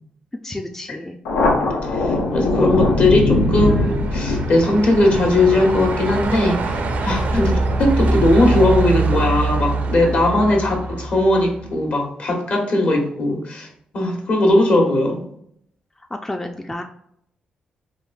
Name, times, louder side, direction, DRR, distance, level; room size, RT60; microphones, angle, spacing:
voice 1, 0.4-1.2 7.3-7.5 10.4-10.7 16.0-16.8, left 1 dB, 10° left, 4 dB, 0.3 m, -30 dB
Thunder, 1.2-8.3, left 2 dB, 90° left, 0.5 m, -22 dB
voice 2, 1.8-13.7 13.9-15.2, left 2 dB, 60° left, 1 dB, 1.1 m, -18 dB
Truck, 2.3-11.7, right 3 dB, 60° right, 0.5 m, -24 dB
3.6 x 2.5 x 2.3 m, 0.71 s
supercardioid pair, 60°, 3 cm